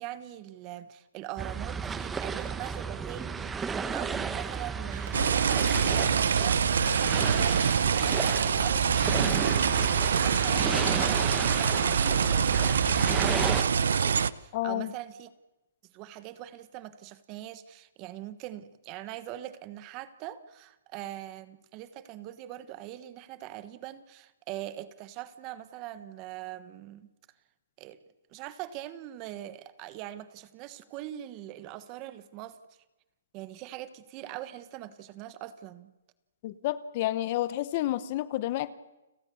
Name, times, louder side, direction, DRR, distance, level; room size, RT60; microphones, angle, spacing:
voice 1, 0.0-12.1 13.2-15.3 15.9-27.1 27.8-28.0 28.3-32.6 33.3-35.9, right 13 dB, 25° right, 14 dB, 1.2 m, -42 dB
sound 1, 1.4-13.6, right 5 dB, 10° right, 1.0 m, -33 dB
Breathing, 4.9-12.1, right 6 dB, 60° right, 4.9 m, -42 dB
sound 2, 5.1-14.3, right 6 dB, 80° right, 0.8 m, -25 dB
voice 2, 14.5-14.9 36.4-38.7, left 14 dB, 35° left, 16 dB, 0.9 m, -30 dB
30.0 x 18.0 x 7.1 m, 1.0 s
hypercardioid pair, 165°, 0 cm